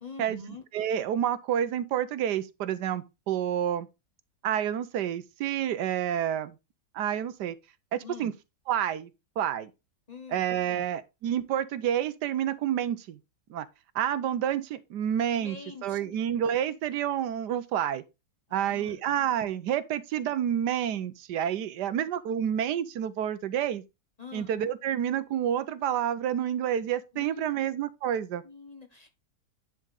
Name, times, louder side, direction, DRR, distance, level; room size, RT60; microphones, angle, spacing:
voice 1, 0.0-0.6 8.0-8.3 10.1-10.8 15.4-16.2 18.5-19.0 24.2-24.6 27.1-27.7 28.4-29.1, left 3 dB, 25° left, 1.4 m, -45 dB
voice 2, 0.7-3.9 4.4-6.5 6.9-7.5 7.9-8.3 8.7-9.1 9.4-9.7 10.3-13.2 13.5-13.7 13.9-15.6 15.8-18.0 18.5-23.8 24.3-28.4, right 10 dB, 85° right, 1.3 m, -29 dB
10.5 x 4.7 x 3.7 m
omnidirectional pair, 1.8 m